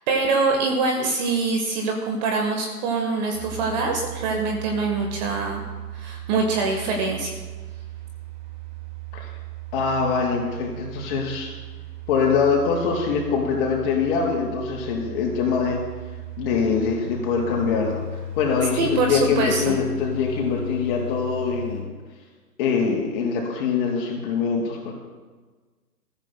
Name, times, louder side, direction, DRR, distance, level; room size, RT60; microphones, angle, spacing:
voice 1, 0.1-5.6 5.9-7.3 18.8-19.8, right 4 dB, 25° right, 3 dB, 1.3 m, -24 dB
sound 1, 3.3-21.8, right 2 dB, 45° right, 4.9 m, -36 dB
voice 2, 9.7-11.5 12.1-15.8 16.4-21.9 22.6-24.9, left 5 dB, 35° left, -1 dB, 3.8 m, -23 dB
21.0 x 14.0 x 2.2 m, 1.4 s
figure-of-eight pair, 130°, 48 cm